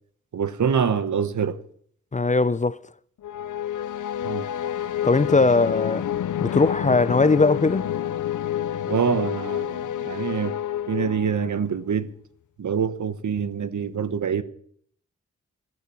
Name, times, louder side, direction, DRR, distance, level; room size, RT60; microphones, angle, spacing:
voice 1, 0.3-1.6 4.2-4.5 8.9-10.6 10.9-12.1 12.6-14.4, right 7 dB, 75° right, 1.0 m, -25 dB
voice 2, 2.1-2.8 5.0-6.1 6.4-7.9, left 3 dB, 25° left, 0.5 m, -20 dB
sound 1, 3.2-11.7, left 10 dB, 85° left, 0.6 m, -29 dB
15.0 x 11.0 x 6.1 m
cardioid pair, 45°, 30 cm